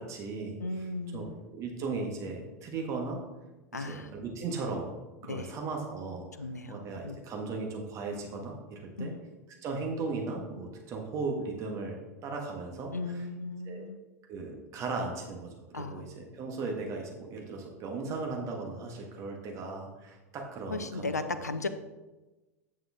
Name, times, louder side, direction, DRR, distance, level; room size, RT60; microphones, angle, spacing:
voice 1, 0.0-0.9 1.1-3.2 3.7-4.9 5.2-6.2 6.7-9.1 9.6-13.2 13.7-13.8 14.3-21.4, right 3 dB, 35° right, 1 dB, 1.6 m, -37 dB
voice 2, 0.6-1.4 3.7-4.1 5.3-5.5 6.4-7.2 9.0-9.2 12.9-14.0 15.7-16.0 20.7-21.7, left 3 dB, 85° left, 10 dB, 0.6 m, -36 dB
8.8 x 6.6 x 3.6 m, 1.1 s
figure-of-eight pair, 85°, 9 cm